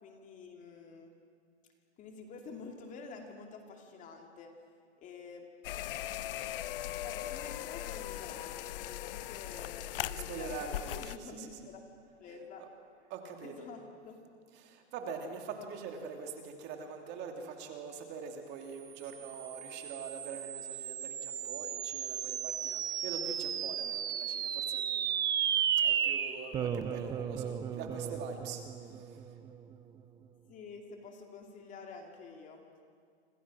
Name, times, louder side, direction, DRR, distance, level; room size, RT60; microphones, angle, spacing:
voice 1, 0.0-1.1 2.0-4.5 5.0-5.5 6.8-9.9 10.1-11.8 12.2-12.7 13.4-14.2 30.5-32.7, left 5 dB, 20° left, 3 dB, 2.5 m, -49 dB
sound 1, 5.6-11.2, left 13 dB, 50° left, 0.8 m, -39 dB
voice 2, 10.0-11.7 12.6-12.7 13.1-13.6 14.5-25.1 25.8-29.2, right 5 dB, 30° right, 4 dB, 2.8 m, -44 dB
sound 2, 19.1-29.7, right 9 dB, 10° right, 0.6 m, -34 dB
27.5 x 26.5 x 6.2 m, 2.1 s
hypercardioid pair, 145°, 35 cm